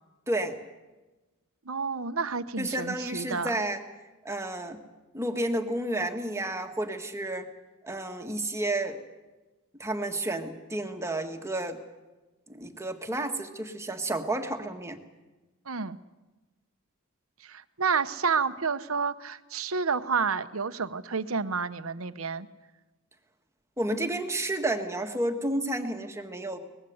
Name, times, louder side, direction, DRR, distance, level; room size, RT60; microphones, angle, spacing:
voice 1, 0.3-0.6 2.6-3.8 4.2-4.8 5.1-7.5 7.8-9.0 9.8-11.8 12.5-15.0 23.8-26.6, right 1 dB, 15° right, 5 dB, 1.7 m, -31 dB
voice 2, 1.7-3.5 15.7-16.0 17.4-22.5, right 5 dB, 70° right, 12 dB, 1.0 m, -30 dB
23.5 x 20.0 x 7.9 m, 1.1 s
head